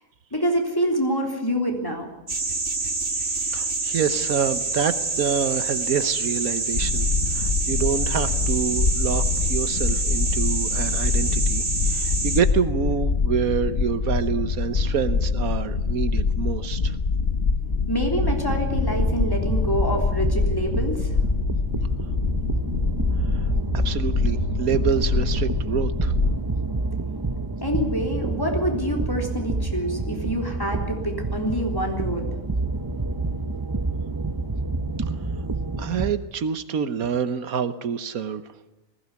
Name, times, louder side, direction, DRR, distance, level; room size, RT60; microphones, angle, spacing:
voice 1, 0.3-2.1 17.9-21.1 27.6-32.3, equal, 15° left, 2 dB, 3.6 m, -26 dB
sound 1, 2.3-12.4, right 4 dB, 45° right, 2.3 m, -27 dB
voice 2, 3.2-17.0 23.3-26.1 35.8-38.4, right 7 dB, 80° right, 12 dB, 1.5 m, -27 dB
sound 2, 6.7-26.4, left 4 dB, 45° left, 1.3 m, -25 dB
sound 3, 18.2-36.1, right 3 dB, 20° right, 0.8 m, -28 dB
20.0 x 16.5 x 9.6 m, 0.96 s
omnidirectional pair, 1.5 m